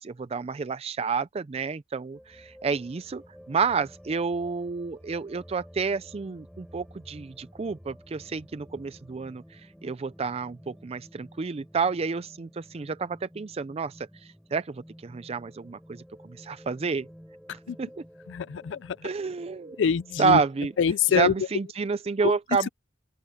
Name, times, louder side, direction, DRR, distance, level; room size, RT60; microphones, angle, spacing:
voice 1, 0.0-3.2 3.5-17.1 17.5-17.9 19.0-19.8 20.2-20.7 21.1-22.7, right 5 dB, 35° right, 0.4 m, -29 dB
sound 1, 2.1-21.3, equal, ahead, 5.9 m, -52 dB
voice 2, 18.3-19.0 19.8-20.4 20.8-21.3 22.2-22.3, left 7 dB, 80° left, 0.4 m, -24 dB
open air
head